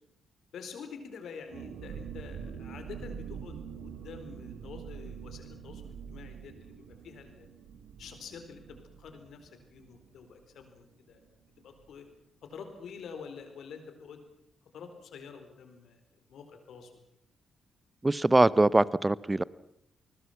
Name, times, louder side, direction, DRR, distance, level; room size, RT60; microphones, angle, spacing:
voice 1, 0.5-5.8 6.1-7.5 8.0-11.2 11.6-12.1 12.4-14.2 14.7-16.0 16.3-17.0, left 6 dB, 65° left, 4.2 m, -47 dB
sound 1, 1.5-10.9 11.2-11.3 11.6-11.9, right 7 dB, 70° right, 2.1 m, -45 dB
voice 2, 18.0-19.4, right 2 dB, 20° right, 1.0 m, -23 dB
28.5 x 20.5 x 5.9 m
hypercardioid pair, 40°, 0 cm